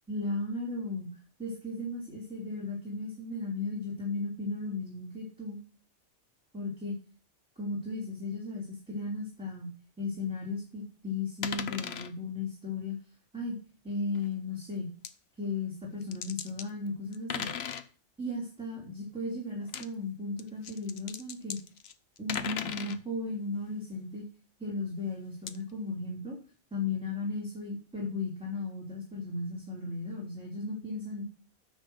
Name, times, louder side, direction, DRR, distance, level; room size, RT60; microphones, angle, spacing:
voice 1, 0.1-1.1 1.4-5.6 6.5-6.9 7.6-9.7 10.0-13.0 13.3-13.6 13.8-14.9 15.4-17.5 18.2-21.6 22.2-24.2 24.6-26.4 26.7-31.2, left 3 dB, 5° right, -4 dB, 3.4 m, -35 dB
sound 1, 11.4-12.1 14.2-14.3 15.0-15.1 16.0-16.7 17.1-17.9 19.6-19.9 20.4-23.0 25.5-25.6, left 8 dB, 60° left, 1.0 m, -37 dB
9.6 x 6.4 x 6.2 m, 0.37 s
omnidirectional pair, 1.3 m